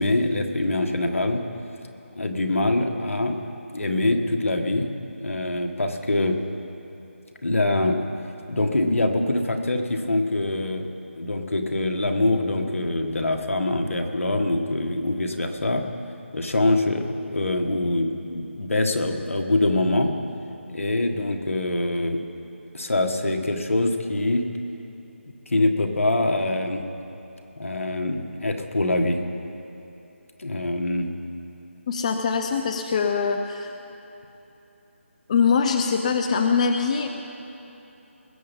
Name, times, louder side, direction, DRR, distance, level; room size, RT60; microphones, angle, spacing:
voice 1, 0.0-1.4 2.1-3.4 3.7-4.9 5.2-6.4 7.4-8.1 8.5-10.9 11.2-15.8 16.3-20.1 20.7-22.3 22.7-24.5 25.5-26.9 27.6-29.2 30.4-31.1, left 2 dB, 80° left, 4 dB, 1.6 m, -24 dB
voice 2, 31.9-33.7 35.3-37.1, left 5 dB, 30° left, 5 dB, 0.6 m, -23 dB
21.0 x 8.4 x 5.4 m, 3.0 s
figure-of-eight pair, 165°, 7 cm